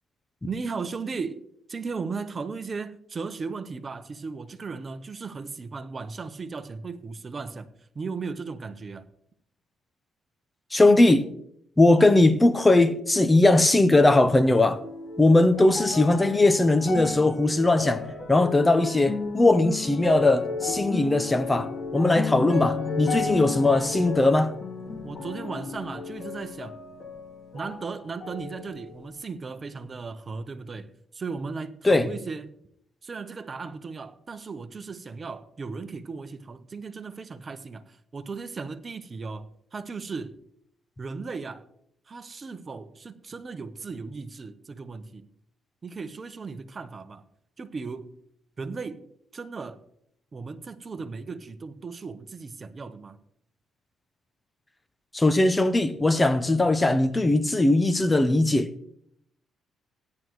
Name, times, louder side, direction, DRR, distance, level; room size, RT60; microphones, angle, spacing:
voice 1, 0.5-1.4 1.7-9.1 25.0-26.8 27.5-32.5 33.0-40.3 41.0-41.7 42.1-45.3 45.8-47.2 47.6-48.1 48.6-49.0 49.3-49.8 50.3-53.2, right 4 dB, 35° right, 1.0 m, -36 dB
voice 2, 10.7-11.3 11.8-14.8 15.2-24.5 31.8-32.1 55.1-58.7, left 2 dB, 15° left, 0.8 m, -20 dB
sound 1, 14.4-27.9 28.2-29.2 29.8-29.9, left 5 dB, 45° left, 2.0 m, -33 dB
16.5 x 10.5 x 3.2 m
cardioid pair, 90°, 0 cm